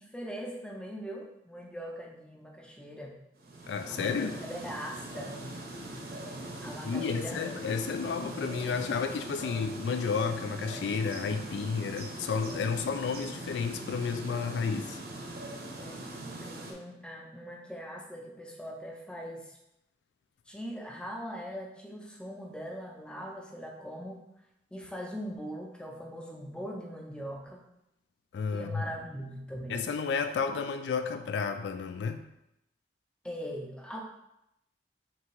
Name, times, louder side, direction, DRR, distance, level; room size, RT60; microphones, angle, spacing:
voice 1, 0.0-3.2 3.9-5.4 6.6-7.6 9.4-9.7 15.8-16.0 16.4-19.6 20.5-24.2 24.7-27.7 28.5-29.8 33.2-34.0, equal, 5° left, 0 dB, 0.5 m, -41 dB
sound 1, 3.4-16.7, right 1 dB, 55° right, 0.6 m, -41 dB
voice 2, 3.7-4.3 6.8-15.0 28.3-28.8 29.7-32.2, left 5 dB, 80° left, 8 dB, 0.3 m, -31 dB
3.3 x 2.9 x 4.6 m, 0.84 s
head